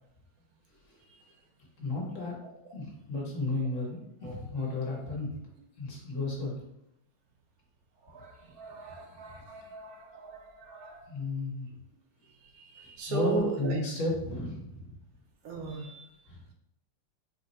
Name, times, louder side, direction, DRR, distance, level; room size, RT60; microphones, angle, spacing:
voice 1, 1.8-2.3 2.7-5.4 5.8-6.6 11.1-11.7 13.1-14.9 16.3-16.4, left 2 dB, 50° left, -2 dB, 1.3 m, -33 dB
voice 2, 8.0-11.1 12.5-13.8 15.4-16.0, right 4 dB, 65° right, 2 dB, 1.0 m, -37 dB
3.8 x 2.1 x 4.0 m, 0.79 s
omnidirectional pair, 1.8 m